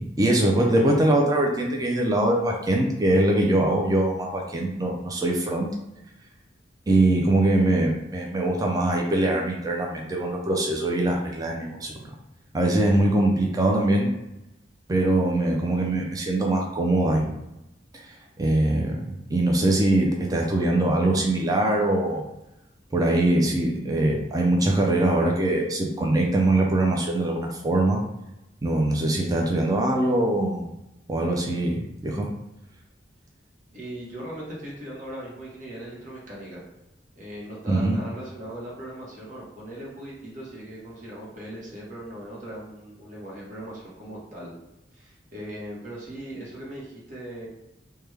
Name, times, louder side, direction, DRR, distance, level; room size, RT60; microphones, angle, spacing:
voice 1, 0.0-5.7 6.9-12.0 12.5-14.1 14.9-17.3 17.9-22.2 22.9-28.0 28.6-30.7 31.1-32.3 37.7-38.0, right 1 dB, 20° right, 0 dB, 0.4 m, -22 dB
voice 2, 33.7-36.6 37.2-44.6 44.9-47.5, right 1 dB, 45° right, -5 dB, 0.9 m, -39 dB
3.3 x 2.2 x 3.2 m, 0.91 s
head